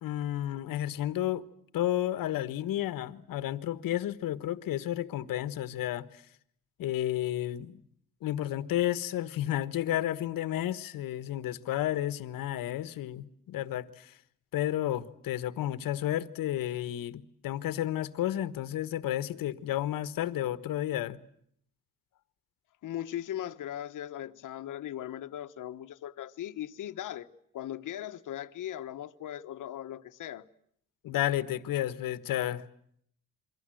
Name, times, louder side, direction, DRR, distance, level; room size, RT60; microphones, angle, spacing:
voice 1, 0.0-1.4 1.7-6.2 6.8-7.8 8.2-14.1 14.5-21.2 31.0-32.6, left 12 dB, 80° left, 1.4 m, -32 dB
voice 2, 22.8-27.3 27.5-30.5, left 11 dB, 65° left, 1.3 m, -38 dB
28.5 x 23.5 x 7.8 m
cardioid pair, 165°, 33 cm